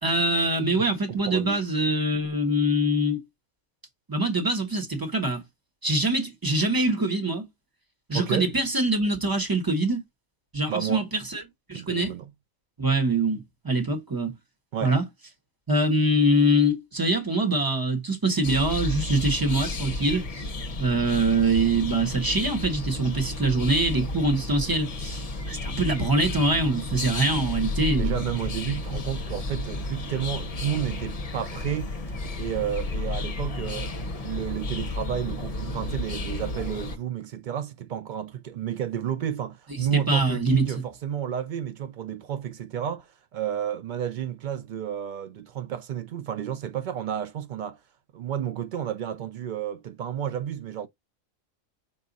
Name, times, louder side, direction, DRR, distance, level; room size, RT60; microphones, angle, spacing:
voice 1, 0.0-3.2 4.1-5.4 5.8-7.5 8.1-10.0 10.5-11.4 11.7-12.1 12.8-14.4 14.8-15.0 15.7-20.5 20.8-28.2 39.7-40.8, right 1 dB, 15° right, 1.1 m, -24 dB
voice 2, 1.1-1.6 8.1-8.5 10.7-11.1 11.7-12.3 14.7-14.9 27.9-32.0 32.4-33.9 34.2-47.8 48.1-50.9, right 9 dB, 85° right, 0.4 m, -31 dB
sound 1, 18.4-37.0, left 2 dB, 35° left, 0.7 m, -32 dB
5.5 x 2.4 x 3.9 m
omnidirectional pair, 1.4 m